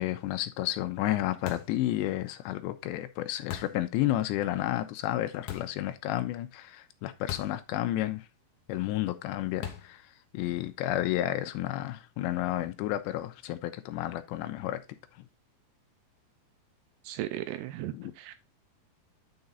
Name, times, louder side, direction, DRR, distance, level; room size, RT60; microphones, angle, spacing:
voice 1, 0.0-8.3 8.7-14.8 15.1-15.2 17.8-18.1, left 14 dB, 85° left, 2.9 m, -31 dB
sound 1, 1.5-1.8 3.5-3.9 5.5-5.8 7.3-7.6 7.9-8.0 9.6-10.0, left 10 dB, 65° left, 2.5 m, -39 dB
voice 2, 17.1-17.9 18.2-18.4, right 14 dB, 80° right, 2.5 m, -35 dB
9.4 x 4.9 x 4.0 m
omnidirectional pair, 5.2 m